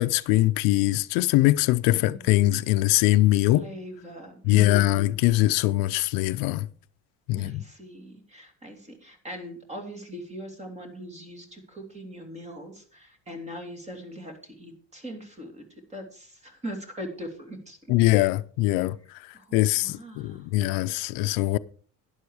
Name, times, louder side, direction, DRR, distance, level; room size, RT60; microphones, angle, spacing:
voice 1, 0.0-3.6 4.4-6.7 7.3-7.6 17.9-18.9 19.5-21.6, left 16 dB, 85° left, 0.6 m, -22 dB
voice 2, 1.8-2.5 3.5-5.1 7.4-15.7 15.9-17.8 19.3-20.5, equal, 20° right, 3.0 m, -41 dB
11.5 x 10.5 x 4.9 m
cardioid pair, 140°, 34 cm